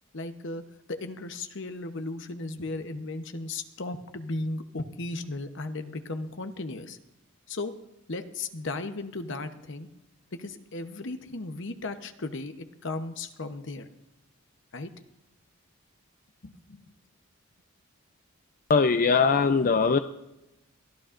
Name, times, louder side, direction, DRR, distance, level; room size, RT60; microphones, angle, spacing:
voice 1, 0.1-0.6 0.9-7.0 7.5-7.7 8.1-9.9 10.4-13.9 14.7-14.9 16.4-16.8, left 2 dB, 55° left, 8 dB, 0.9 m, -36 dB
voice 2, 18.7-20.0, left 5 dB, 40° left, 9 dB, 0.4 m, -21 dB
23.0 x 14.0 x 2.6 m, 0.91 s
head